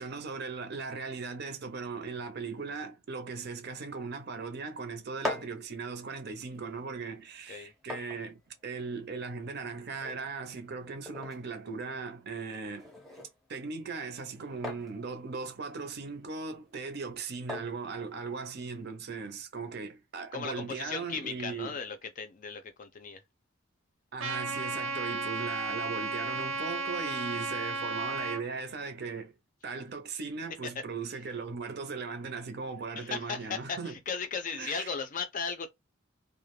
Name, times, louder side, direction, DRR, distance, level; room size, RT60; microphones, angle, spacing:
voice 1, 0.0-12.9 13.5-21.8 24.1-29.3 29.6-33.9 34.5-34.9, right 4 dB, 50° right, 0.6 m, -38 dB
sound 1, 5.0-18.8, left 2 dB, ahead, 0.7 m, -45 dB
voice 2, 20.3-23.2 30.6-30.7 33.0-35.7, left 5 dB, 40° left, 0.4 m, -36 dB
Trumpet, 24.2-28.4, right 3 dB, 90° right, 0.8 m, -34 dB
2.3 x 2.1 x 3.0 m
head